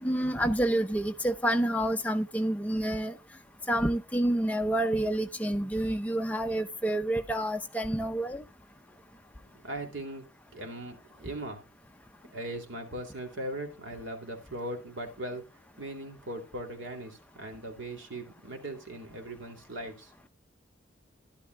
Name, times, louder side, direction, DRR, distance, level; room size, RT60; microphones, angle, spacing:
voice 1, 0.0-3.1 3.7-8.4, right 1 dB, 10° left, 0.6 m, -28 dB
voice 2, 9.5-11.7 12.3-15.5 15.8-20.1, right 1 dB, 85° right, 2.7 m, -39 dB
12.0 x 11.5 x 2.3 m
head